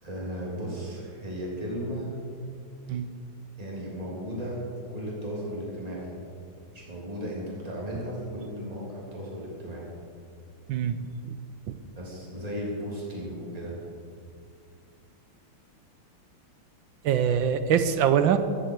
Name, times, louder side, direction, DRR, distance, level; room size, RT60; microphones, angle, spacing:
voice 1, 0.0-2.2 3.6-4.6 4.9-6.1 6.7-9.9 11.9-13.8, equal, 15° right, -5 dB, 3.2 m, -35 dB
voice 2, 10.7-11.3 11.7-11.8 17.0-18.4, right 8 dB, 70° right, 10 dB, 1.4 m, -24 dB
15.0 x 14.5 x 4.7 m, 2.4 s
omnidirectional pair, 2.3 m